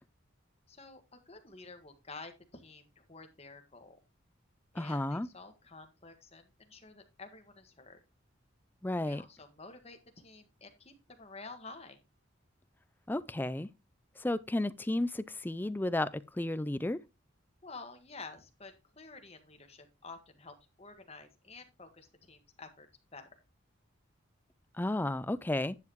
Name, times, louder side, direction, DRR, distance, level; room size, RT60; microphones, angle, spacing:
voice 1, 0.7-4.0 4.7-8.0 9.1-12.0 17.6-23.3, left 3 dB, 30° left, 1.6 m, -50 dB
voice 2, 4.8-5.3 8.8-9.2 13.1-13.7 14.2-17.0 24.8-25.8, left 1 dB, 10° left, 0.4 m, -33 dB
11.0 x 7.8 x 3.0 m
head